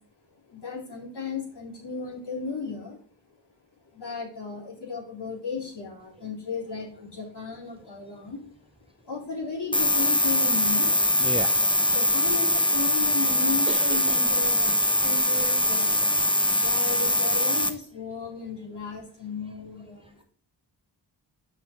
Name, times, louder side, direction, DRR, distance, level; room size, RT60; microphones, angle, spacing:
voice 1, 0.5-3.0 3.9-8.5 9.1-10.9 11.9-14.7 15.0-15.9 16.5-20.2, left 4 dB, 60° left, -3 dB, 3.4 m, -35 dB
sound 1, 9.7-17.7, left 1 dB, 10° left, 1.0 m, -22 dB
voice 2, 11.2-11.9 13.7-14.2, right 2 dB, 15° right, 6 dB, 0.6 m, -35 dB
7.9 x 5.7 x 3.6 m, 0.42 s
cardioid pair, 65°, 44 cm